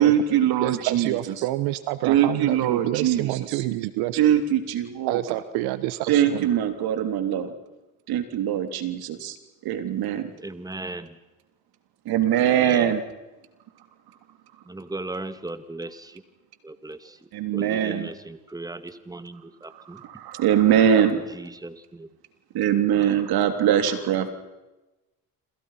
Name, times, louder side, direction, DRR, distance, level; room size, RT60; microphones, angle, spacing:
voice 1, 0.0-1.2 2.1-3.6 4.2-5.4 6.1-7.5 8.1-9.4 9.7-10.3 12.1-13.0 17.3-18.1 19.7-21.2 22.5-24.3, right 10 dB, 70° right, 9 dB, 3.4 m, -22 dB
voice 2, 0.6-4.2 5.1-6.5, right 16 dB, 85° right, 14 dB, 1.2 m, -28 dB
voice 3, 10.4-11.2 12.5-12.9 14.7-16.2 16.6-17.2 17.5-20.0 21.3-22.1 22.7-23.2, right 2 dB, 10° right, 12 dB, 2.0 m, -37 dB
27.5 x 27.5 x 5.8 m, 1.1 s
supercardioid pair, 90°, 39 cm